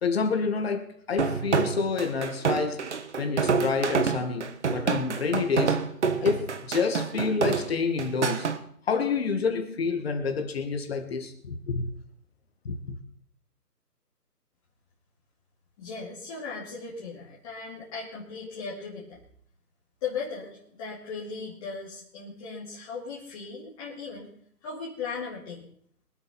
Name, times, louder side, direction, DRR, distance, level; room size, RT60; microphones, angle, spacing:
voice 1, 0.0-2.9 3.2-5.8 6.2-8.5 8.9-11.9 12.6-13.0, left 5 dB, 40° left, 2.1 m, -28 dB
sound 1, 1.2-8.6, right 5 dB, 45° right, 1.4 m, -27 dB
voice 2, 15.8-19.2 20.0-24.3 24.6-25.7, left 5 dB, 20° left, 2.8 m, -37 dB
24.5 x 8.3 x 4.3 m
hypercardioid pair, 160°, 48 cm